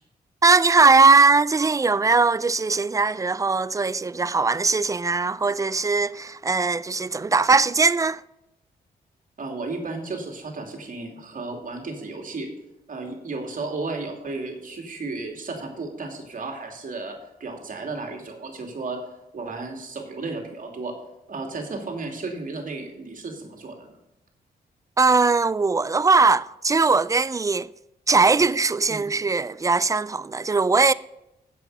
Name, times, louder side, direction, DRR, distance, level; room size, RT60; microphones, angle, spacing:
voice 1, 0.4-8.2 25.0-27.7 28.1-30.9, right 4 dB, 20° right, 0.4 m, -20 dB
voice 2, 9.4-12.5 12.9-19.0 19.3-20.9 21.3-23.9 28.9-29.1, right 3 dB, 55° right, 2.7 m, -33 dB
7.9 x 7.8 x 6.6 m
cardioid pair, 65°, 17 cm